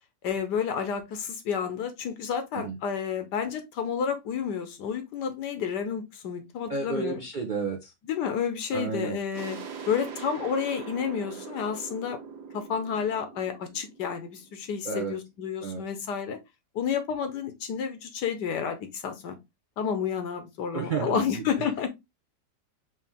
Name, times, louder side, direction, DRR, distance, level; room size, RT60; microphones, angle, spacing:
voice 1, 0.2-7.2 8.1-9.6 9.9-12.2 12.5-16.4 16.7-19.4 19.8-21.9, left 7 dB, 75° left, 1.5 m, -30 dB
voice 2, 6.7-7.9 8.7-9.2 14.8-15.1 15.6-15.8 20.7-21.5, right 4 dB, 55° right, 0.5 m, -31 dB
sound 1, 9.3-14.8, right 6 dB, 75° right, 1.4 m, -42 dB
4.7 x 2.9 x 3.5 m
omnidirectional pair, 1.8 m